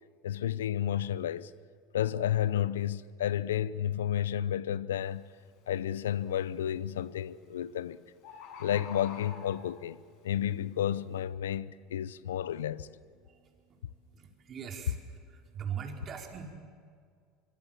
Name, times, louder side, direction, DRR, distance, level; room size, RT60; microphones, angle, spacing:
voice 1, 0.2-1.5 1.9-5.3 5.7-8.0 8.6-10.0 10.2-12.9, left 10 dB, 85° left, 0.7 m, -31 dB
Bird, 5.0-5.2 5.7-6.2 7.2-7.3 7.6-7.7 7.9-8.0 8.2-9.9 10.5-10.6, left 5 dB, 60° left, 5.8 m, -46 dB
voice 2, 14.2-15.0 15.3-16.5, right 8 dB, 40° right, 4.5 m, -40 dB
25.0 x 23.0 x 7.5 m
hypercardioid pair, 80°, 0 cm